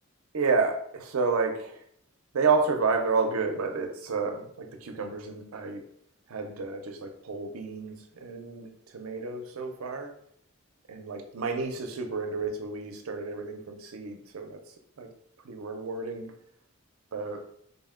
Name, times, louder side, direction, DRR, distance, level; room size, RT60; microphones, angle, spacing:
voice 1, 0.3-1.8 2.3-5.8 6.3-10.1 10.9-14.6 15.0-15.1 15.4-16.3 17.1-17.4, right 4 dB, 85° right, 5 dB, 0.5 m, -30 dB
3.9 x 2.1 x 3.6 m, 0.68 s
head